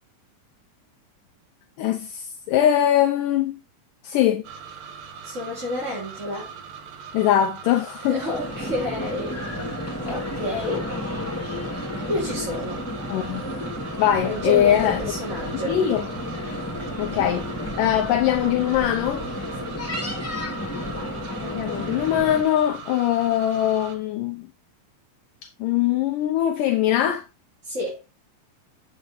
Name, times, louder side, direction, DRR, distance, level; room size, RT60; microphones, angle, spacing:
voice 1, 1.8-3.6 4.0-4.4 7.1-8.2 13.1-13.4 14.0-15.0 15.6-16.0 17.0-17.5 17.8-19.3 21.4-24.5 25.6-27.3, left 11 dB, 75° left, 2.3 m, -22 dB
sound 1, 4.4-24.0, right 6 dB, 75° right, 3.1 m, -41 dB
voice 2, 5.2-6.5 8.0-9.4 10.0-11.0 12.1-12.8 14.2-15.7 19.6-19.7 27.6-28.0, left 1 dB, 20° right, 4.3 m, -30 dB
sound 2, 8.1-22.4, left 1 dB, 5° left, 2.0 m, -32 dB
9.1 x 8.3 x 3.1 m
omnidirectional pair, 4.1 m